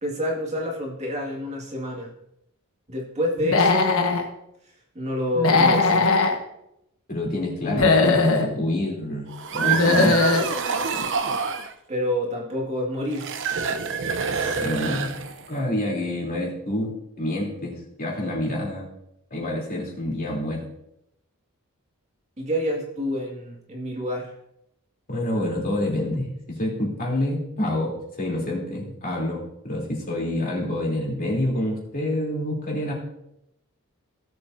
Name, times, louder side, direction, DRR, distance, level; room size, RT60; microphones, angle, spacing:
voice 1, 0.0-2.1 2.9-4.3 4.9-6.1 11.9-13.3 22.4-24.3, equal, 30° right, -1 dB, 2.1 m, -28 dB
Human voice / Animal, 3.4-4.2 5.4-6.3 7.6-8.5 9.6-10.5, left 3 dB, 70° left, 1.4 m, -19 dB
voice 2, 7.1-9.3 9.5-10.2 14.3-15.1 15.5-18.9 19.3-20.7 25.1-32.9, left 1 dB, 40° left, -2 dB, 3.3 m, -27 dB
sound 1, 9.3-11.7 13.1-15.6, right 5 dB, 60° right, 0.8 m, -27 dB
17.5 x 7.9 x 2.7 m, 0.82 s
head